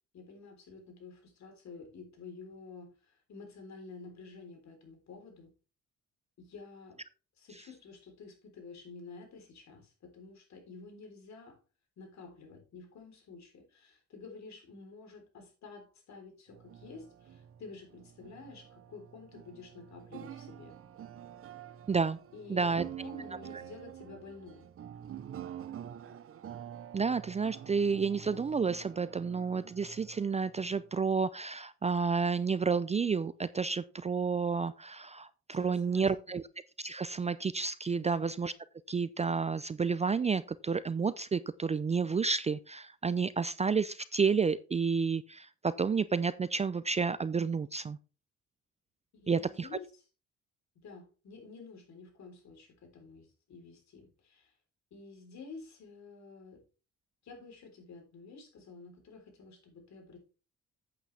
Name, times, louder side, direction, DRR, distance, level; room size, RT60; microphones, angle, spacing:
voice 1, 0.1-5.5 6.4-7.0 7.4-11.6 12.0-20.7 22.3-24.7 35.5-36.1 49.1-49.8 50.8-54.5 54.9-56.6 57.2-60.2, left 4 dB, 65° left, 3 dB, 3.9 m, -50 dB
sound 1, 16.5-31.2, right 10 dB, 50° right, 0.7 m, -47 dB
voice 2, 21.9-22.2 22.5-22.8 26.9-36.4 36.8-38.5 38.9-48.0 49.3-49.7, right 5 dB, 20° right, 16 dB, 0.4 m, -30 dB
8.7 x 8.3 x 3.4 m, 0.34 s
cardioid pair, 90°, 30 cm